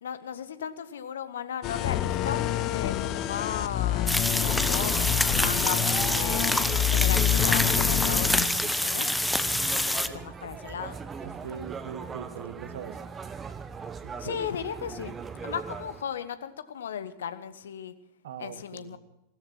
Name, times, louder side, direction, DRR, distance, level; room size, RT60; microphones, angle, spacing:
voice 1, 0.0-2.5 2.7-6.5 6.9-11.0 14.2-15.2 15.4-17.9 18.4-19.0, left 8 dB, 65° left, 14 dB, 1.0 m, -36 dB
sound 1, 1.6-8.5, left 13 dB, 35° left, 0.8 m, -27 dB
sound 2, 4.1-10.1, left 1 dB, 5° left, 0.8 m, -26 dB
sound 3, 4.4-16.0, right 6 dB, 20° right, 1.0 m, -39 dB
voice 2, 11.2-13.0 14.0-14.4 18.2-19.0, right 7 dB, 60° right, 10 dB, 1.6 m, -41 dB
16.0 x 13.5 x 6.1 m, 0.88 s
figure-of-eight pair, 95°, 0 cm